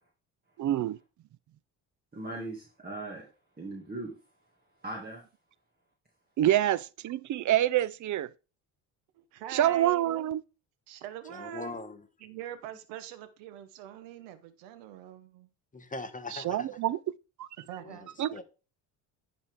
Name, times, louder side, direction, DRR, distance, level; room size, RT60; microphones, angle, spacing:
voice 1, 0.6-1.0 6.4-8.3 9.5-10.4 16.3-17.0 17.4-17.5 18.2-18.4, right 12 dB, 45° right, 0.5 m, -26 dB
voice 2, 2.1-3.3 3.6-4.1 4.8-5.2, right 2 dB, 20° right, 2.2 m, -39 dB
voice 3, 9.1-10.3 10.9-11.8 12.2-15.5 17.6-18.1, right 12 dB, 90° right, 1.1 m, -43 dB
voice 4, 11.3-12.1 15.7-16.7 17.8-18.4, left 3 dB, 20° left, 1.2 m, -41 dB
10.0 x 4.2 x 3.6 m
supercardioid pair, 80°, 42 cm